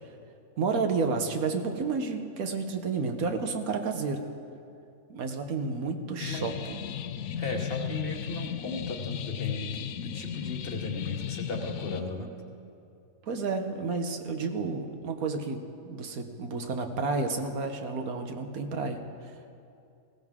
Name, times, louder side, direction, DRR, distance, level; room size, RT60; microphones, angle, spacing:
voice 1, 0.6-4.2 5.1-6.8 13.2-19.0, right 4 dB, 80° right, 6 dB, 1.5 m, -31 dB
sound 1, 6.2-12.0, left 8 dB, 85° left, 1.1 m, -35 dB
voice 2, 7.4-9.7 10.0-12.3, left 3 dB, 45° left, 2 dB, 1.3 m, -36 dB
19.0 x 16.0 x 3.7 m, 2.5 s
omnidirectional pair, 1.5 m